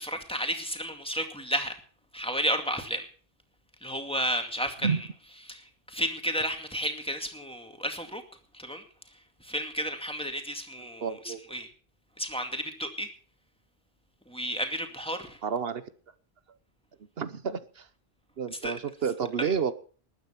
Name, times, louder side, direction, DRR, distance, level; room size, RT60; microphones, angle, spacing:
voice 1, 0.0-1.8 2.1-3.1 3.8-5.0 5.5-8.2 8.5-8.8 9.4-11.7 12.2-13.1 14.3-15.4 18.6-18.7 19.4-19.5, equal, 5° left, 5 dB, 2.2 m, -32 dB
voice 2, 11.0-11.4 15.4-15.8 17.2-17.9 18.4-19.7, right 6 dB, 70° right, 13 dB, 1.1 m, -30 dB
20.5 x 9.2 x 5.8 m, 0.42 s
omnidirectional pair, 1.0 m